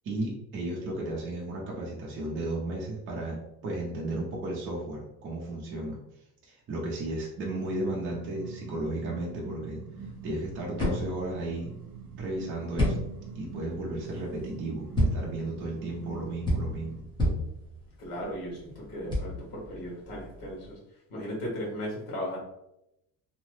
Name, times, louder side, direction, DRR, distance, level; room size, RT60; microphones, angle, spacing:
voice 1, 0.0-3.4 3.6-6.0 6.4-9.8 10.2-11.7 12.2-13.1 13.3-17.1, right 1 dB, 35° right, -3 dB, 0.5 m, -34 dB
sound 1, 7.6-17.0, right 5 dB, 65° right, 0.9 m, -44 dB
sound 2, 10.0-20.7, left 1 dB, 15° left, 0.8 m, -32 dB
voice 2, 18.0-20.8 21.1-22.4, equal, 75° left, -4 dB, 1.3 m, -36 dB
2.8 x 2.1 x 3.1 m, 0.85 s
cardioid pair, 170°, 37 cm